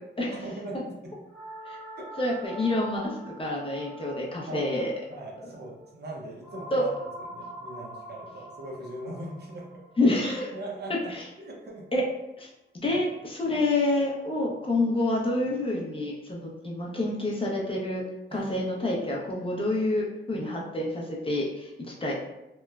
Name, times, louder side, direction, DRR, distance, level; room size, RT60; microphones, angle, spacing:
voice 1, 0.3-1.1 2.0-2.1 4.5-4.7 5.1-6.9 7.2-9.8 10.5-11.1 11.4-11.9 12.9-13.0 18.3-18.5, right 2 dB, 55° right, -2 dB, 0.6 m, -39 dB
sound 1, 1.3-11.5, right 1 dB, 10° left, 1.0 m, -45 dB
voice 2, 2.2-4.9 6.7-6.8 10.0-10.5 11.1-11.2 11.9-12.0 12.4-12.5 12.7-18.0 18.3-22.1, left 2 dB, 25° left, -3 dB, 0.5 m, -28 dB
2.9 x 2.1 x 2.3 m, 0.92 s
wide cardioid pair, 110°, 20 cm